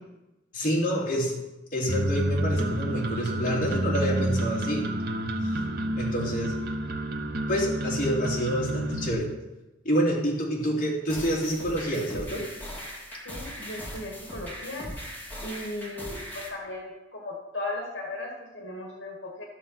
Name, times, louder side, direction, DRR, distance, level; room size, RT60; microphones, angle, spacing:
voice 1, 0.5-1.4 1.7-4.9 5.4-5.6 6.0-6.5 7.5-9.3 9.8-12.5, equal, 45° left, -4 dB, 3.0 m, -27 dB
sound 1, 1.9-9.1, right 1 dB, 55° right, 1.0 m, -29 dB
sound 2, 11.1-16.5, equal, 10° left, 2.6 m, -39 dB
voice 2, 13.2-14.9 15.4-19.4, left 2 dB, 75° left, -1 dB, 2.2 m, -37 dB
13.5 x 6.9 x 5.9 m, 1.0 s
head